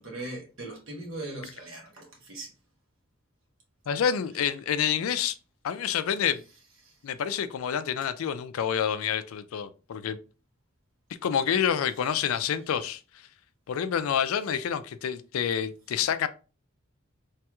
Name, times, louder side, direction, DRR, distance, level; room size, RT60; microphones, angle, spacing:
voice 1, 0.0-2.5 6.8-6.9, right 2 dB, 70° right, 1.2 m, -39 dB
voice 2, 3.9-5.3 5.6-6.4 7.0-10.2 11.2-13.0 13.7-16.3, left 8 dB, 90° left, 0.4 m, -28 dB
3.2 x 2.3 x 2.9 m
head